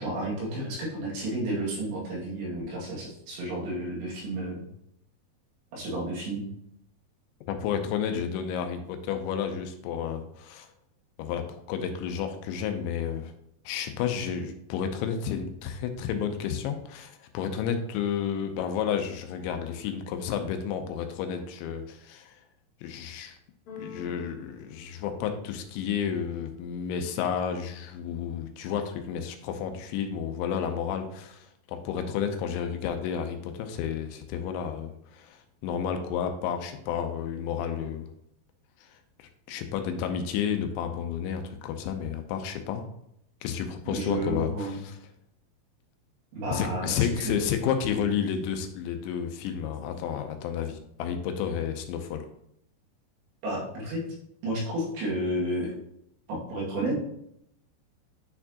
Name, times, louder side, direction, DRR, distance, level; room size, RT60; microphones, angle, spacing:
voice 1, 0.0-4.6 5.7-6.5 43.9-44.8 46.3-47.4 53.4-54.0 54.4-55.7 56.3-57.0, right 1 dB, 75° right, -5 dB, 4.3 m, -31 dB
voice 2, 7.5-10.7 11.2-13.3 13.7-22.4 22.8-23.4 23.8-38.1 38.8-38.9 39.5-42.9 43.4-44.9 46.5-52.2, left 8 dB, 85° left, 6 dB, 3.0 m, -31 dB
Keyboard (musical), 23.7-25.8, left 5 dB, 50° left, 2.8 m, -47 dB
9.9 x 4.4 x 2.9 m, 0.75 s
omnidirectional pair, 5.2 m